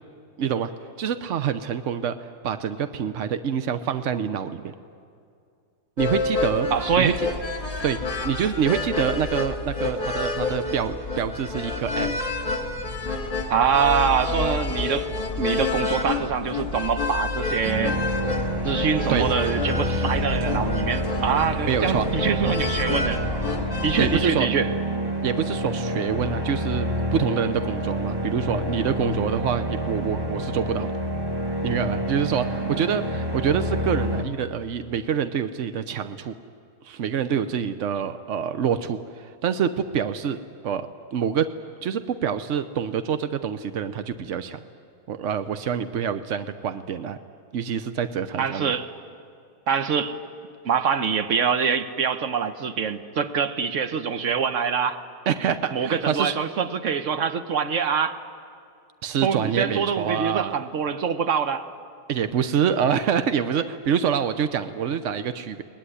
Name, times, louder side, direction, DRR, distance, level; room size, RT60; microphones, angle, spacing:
voice 1, 0.4-0.7 1.0-4.7 6.0-6.7 7.0-7.3 7.8-12.2 19.1-19.3 21.7-22.1 24.0-24.5 25.2-30.9 31.6-36.4 36.8-40.4 40.6-41.5 41.8-44.6 45.1-47.2 47.5-48.7 55.3-56.3 59.0-60.5 62.1-65.6, right 8 dB, 70° right, 10 dB, 0.7 m, -26 dB
sound 1, 6.0-24.2, left 3 dB, 25° left, 2.1 m, -28 dB
voice 2, 6.7-7.2 13.5-15.1 15.4-18.0 18.6-23.2 23.8-24.7 48.4-48.9 49.7-50.2 50.6-55.0 55.7-58.2 59.2-61.7, right 6 dB, 50° right, 10 dB, 1.0 m, -24 dB
sound 2, 17.6-34.2, right 1 dB, 15° right, 1.1 m, -28 dB
23.5 x 19.5 x 10.0 m, 2.4 s
omnidirectional pair, 2.3 m